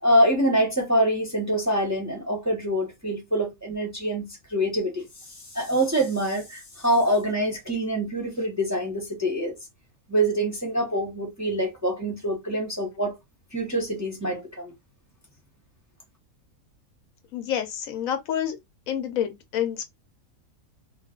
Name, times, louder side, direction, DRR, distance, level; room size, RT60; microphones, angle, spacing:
voice 1, 0.0-5.0 5.5-9.6 10.1-13.1 13.5-14.7, right 1 dB, 15° right, 0.6 m, -25 dB
voice 2, 17.3-18.6 18.9-19.9, left 9 dB, 75° left, 1.0 m, -28 dB
2.4 x 2.3 x 3.6 m
omnidirectional pair, 1.5 m